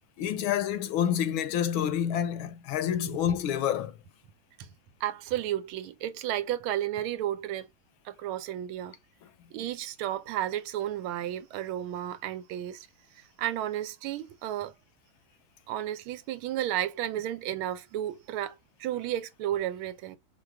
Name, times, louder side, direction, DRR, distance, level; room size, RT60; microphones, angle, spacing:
voice 1, 0.2-4.0, left 9 dB, 75° left, 1.4 m, -28 dB
voice 2, 5.0-7.7 8.0-9.0 9.5-12.9 13.1-14.7 15.7-20.2, right 12 dB, 80° right, 1.4 m, -33 dB
4.8 x 2.2 x 3.4 m
omnidirectional pair, 2.3 m